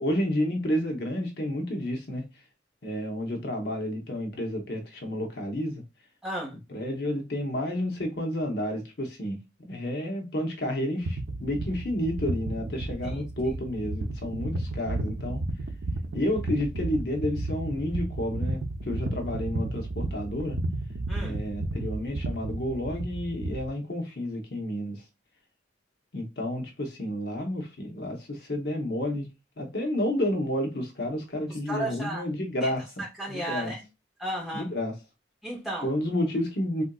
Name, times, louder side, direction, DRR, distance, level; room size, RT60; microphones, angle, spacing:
voice 1, 0.0-2.2 2.8-5.8 6.7-9.4 9.7-15.4 16.1-20.6 21.2-25.0 26.1-29.3 29.6-32.9 33.3-33.7 34.5-34.9 35.8-36.8, left 1 dB, 60° left, 0.8 m, -30 dB
voice 2, 6.2-6.5 13.0-13.3 21.1-21.4 31.7-32.2 32.6-32.7 33.0-33.8 34.2-34.7 35.4-35.9, right 1 dB, ahead, 1.3 m, -34 dB
sound 1, 11.0-23.7, right 2 dB, 90° right, 0.6 m, -33 dB
3.6 x 2.6 x 2.2 m
head